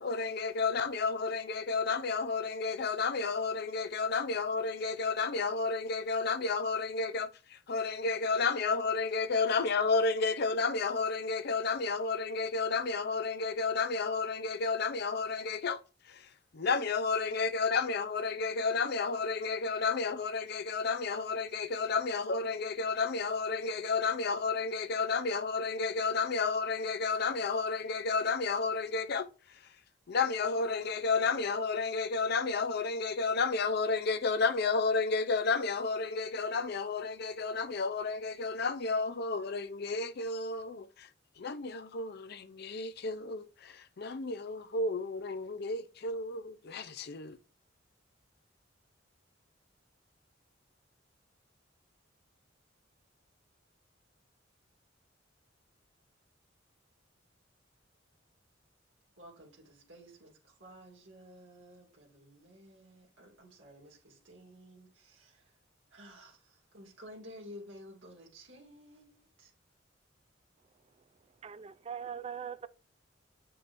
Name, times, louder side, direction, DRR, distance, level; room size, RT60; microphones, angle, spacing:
voice 1, 0.0-15.8 16.1-16.3 16.5-29.3 30.1-41.1 41.4-47.4, left 4 dB, 55° left, 0.6 m, -31 dB
voice 2, 59.2-65.6 65.9-69.5, equal, 80° right, 2.1 m, -53 dB
voice 3, 71.4-72.7, right 7 dB, 30° right, 0.3 m, -41 dB
8.2 x 5.6 x 2.6 m
head